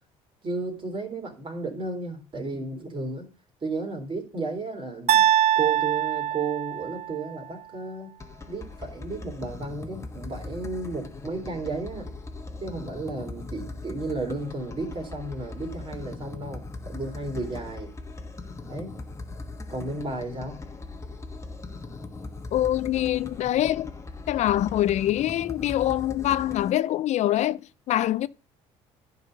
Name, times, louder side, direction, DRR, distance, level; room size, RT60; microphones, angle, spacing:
voice 1, 0.4-3.3 3.6-5.3 5.6-8.2 8.5-12.1 12.6-17.9 18.6-19.0 19.7-20.6, right 3 dB, 35° right, 3.5 m, -33 dB
sound 1, 5.1-7.2, right 11 dB, 55° right, 0.6 m, -23 dB
sound 2, 8.2-26.7, left 3 dB, 20° left, 1.2 m, -40 dB
voice 2, 22.5-23.9 24.3-27.6 27.9-28.3, left 13 dB, 55° left, 0.4 m, -24 dB
10.5 x 4.2 x 6.5 m
supercardioid pair, 75°, 14 cm